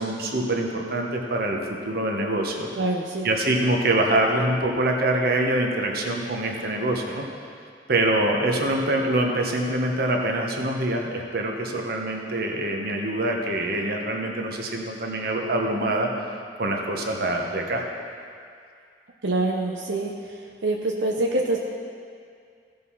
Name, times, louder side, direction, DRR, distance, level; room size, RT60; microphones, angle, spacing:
voice 1, 0.0-2.7 3.2-7.2 7.9-16.1 16.6-17.8, right 1 dB, 60° right, 1 dB, 1.2 m, -25 dB
voice 2, 2.7-3.3 19.2-20.3 20.6-21.6, right 2 dB, 90° right, 0 dB, 0.8 m, -25 dB
15.5 x 5.4 x 5.6 m, 2.2 s
head